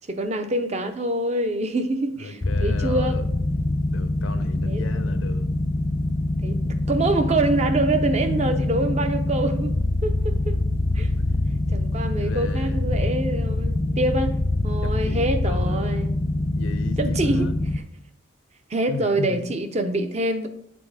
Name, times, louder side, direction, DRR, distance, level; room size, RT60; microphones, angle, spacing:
voice 1, 0.1-3.2 4.6-5.0 6.4-9.7 10.0-10.6 10.9-11.1 11.7-14.3 14.6-16.1 17.0-17.5 18.7-20.5, right 2 dB, 35° right, 8 dB, 0.5 m, -25 dB
voice 2, 2.2-3.2 3.9-5.5 8.1-8.9 11.1-11.2 12.2-12.8 14.8-16.1 16.5-17.6 18.9-19.4, left 3 dB, 85° left, 10 dB, 0.7 m, -34 dB
sound 1, 2.4-17.8, left 2 dB, 20° left, 0.4 m, -24 dB
7.6 x 4.0 x 4.9 m, 0.71 s
head